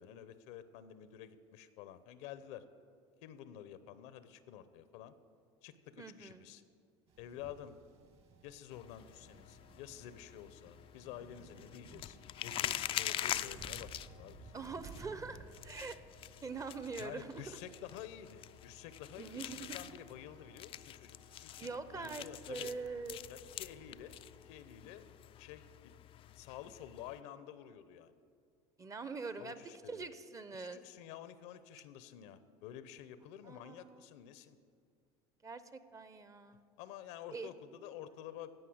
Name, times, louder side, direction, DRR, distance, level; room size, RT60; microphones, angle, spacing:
voice 1, 0.0-2.6 3.2-5.1 5.6-6.6 7.2-7.7 8.4-14.6 17.0-22.7 23.3-24.2 24.4-25.0 25.4-25.9 26.4-28.1 29.4-30.1 30.5-34.6 36.8-38.5, left 10 dB, 75° left, 13 dB, 0.8 m, -50 dB
voice 2, 6.0-6.5 14.5-16.0 16.4-17.4 19.2-19.8 21.6-23.2 28.8-29.6 29.9-30.8 33.4-34.0 35.4-36.6 37.3-37.5, right 4 dB, 20° right, 13 dB, 0.7 m, -44 dB
sound 1, 7.1-24.6, right 4 dB, 40° right, 1.4 m, -59 dB
sound 2, 8.7-27.2, left 12 dB, 40° left, 0.4 m, -45 dB
16.5 x 5.6 x 7.8 m, 2.2 s
supercardioid pair, 105°, 15 cm